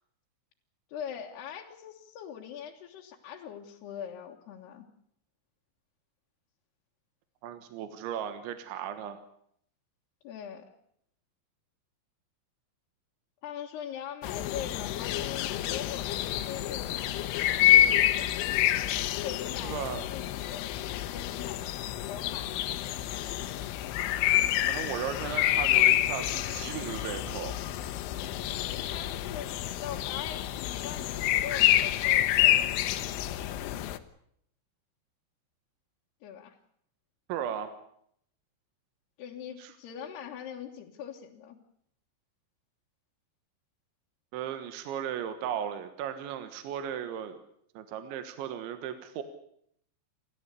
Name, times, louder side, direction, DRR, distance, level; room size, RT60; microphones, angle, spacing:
voice 1, 0.9-4.9 10.2-10.6 13.4-17.2 18.1-18.2 19.2-21.6 22.1-22.7 28.7-29.5 29.8-32.8 36.2-36.6 39.2-41.6, left 9 dB, 65° left, -2 dB, 3.2 m, -42 dB
voice 2, 7.4-9.2 19.6-20.1 24.7-27.6 37.3-37.7 39.6-39.7 44.3-47.4 47.8-49.2, right 9 dB, 75° right, 9 dB, 3.6 m, -36 dB
sound 1, 14.2-34.0, left 13 dB, 85° left, 3.6 m, -28 dB
30.0 x 14.0 x 8.3 m, 0.70 s
omnidirectional pair, 5.6 m